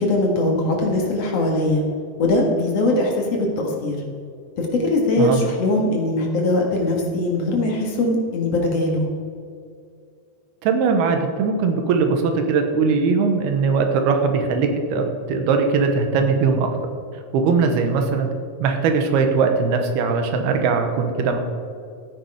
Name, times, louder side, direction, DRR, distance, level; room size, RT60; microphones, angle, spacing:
voice 1, 0.0-1.8 2.2-4.0 4.6-9.1 17.6-17.9, left 2 dB, 50° left, 0 dB, 2.2 m, -21 dB
voice 2, 10.6-16.7 17.3-18.3 18.6-21.4, right 5 dB, 75° right, 5 dB, 2.9 m, -20 dB
14.5 x 9.2 x 4.8 m, 2.3 s
omnidirectional pair, 4.6 m